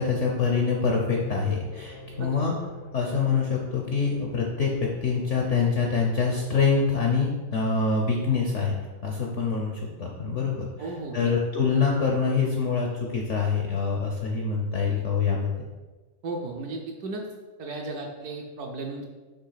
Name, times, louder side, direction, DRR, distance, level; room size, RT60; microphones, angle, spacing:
voice 1, 0.0-2.5 2.9-8.7 9.0-15.5, left 5 dB, 60° left, 0 dB, 0.8 m, -25 dB
sound 1, 1.0-6.5, left 2 dB, 80° left, 1.7 m, -44 dB
voice 2, 10.8-11.3 16.2-17.2 17.6-19.0, right 3 dB, 65° right, 1 dB, 1.0 m, -35 dB
6.5 x 3.1 x 5.7 m, 1.3 s
omnidirectional pair, 2.1 m